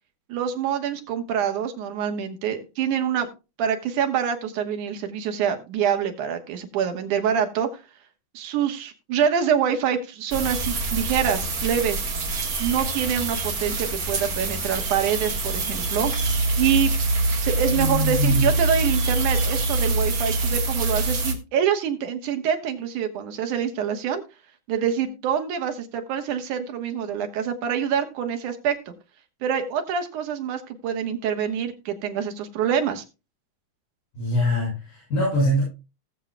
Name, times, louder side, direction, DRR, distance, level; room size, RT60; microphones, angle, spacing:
voice 1, 0.3-3.3 3.6-7.8 8.3-12.1 12.6-16.1 16.6-16.9 17.3-24.2 24.7-28.9 29.4-33.0, right 8 dB, 75° right, 6 dB, 2.8 m, -25 dB
sound 1, 10.3-21.3, right 2 dB, 40° right, 1.5 m, -25 dB
voice 2, 17.7-18.5 34.1-35.6, equal, 80° left, -6 dB, 8.4 m, -24 dB
18.5 x 7.5 x 2.3 m, 0.28 s
omnidirectional pair, 3.6 m